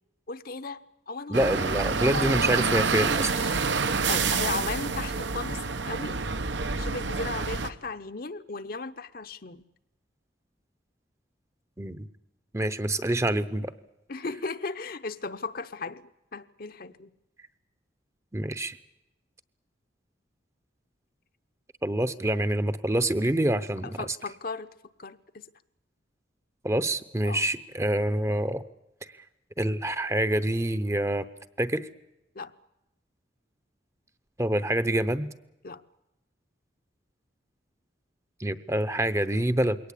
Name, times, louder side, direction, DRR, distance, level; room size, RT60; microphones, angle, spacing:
voice 1, 0.3-0.8 1.1-2.6 3.3-3.5 4.1-6.2 6.8-9.6 14.1-16.0 16.3-17.1 23.8-24.7 25.0-25.4 27.2-27.5 32.3-32.5 35.6-35.8, left 4 dB, 50° left, 11 dB, 0.8 m, -36 dB
voice 2, 1.3-3.3 11.8-12.1 12.5-13.7 18.3-18.8 21.8-24.1 26.6-28.6 29.6-31.3 31.6-31.9 34.4-35.3 38.4-39.8, right 1 dB, 15° right, 12 dB, 0.8 m, -26 dB
sound 1, 1.3-7.7, right 4 dB, 75° right, 1.0 m, -28 dB
22.5 x 18.5 x 8.4 m, 0.92 s
head